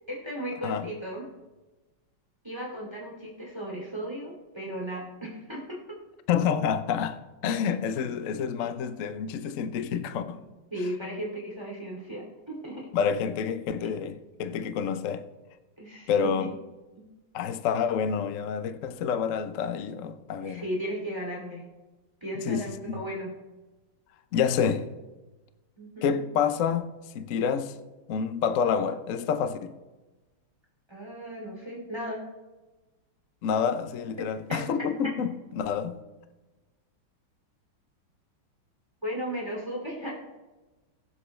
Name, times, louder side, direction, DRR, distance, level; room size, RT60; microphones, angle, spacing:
voice 1, 0.1-1.3 2.4-6.0 10.7-12.9 15.8-16.1 16.9-17.0 20.4-21.6 22.2-23.3 25.8-26.1 30.9-32.2 34.5-34.6 39.0-40.1, equal, 10° right, 2.8 m, -35 dB
voice 2, 6.3-10.4 12.9-15.2 16.1-16.5 17.3-20.6 22.5-23.0 24.3-24.9 26.0-27.7 28.1-29.7 33.4-36.0, left 7 dB, 65° left, 0.7 m, -28 dB
22.5 x 7.7 x 3.3 m
omnidirectional pair, 2.3 m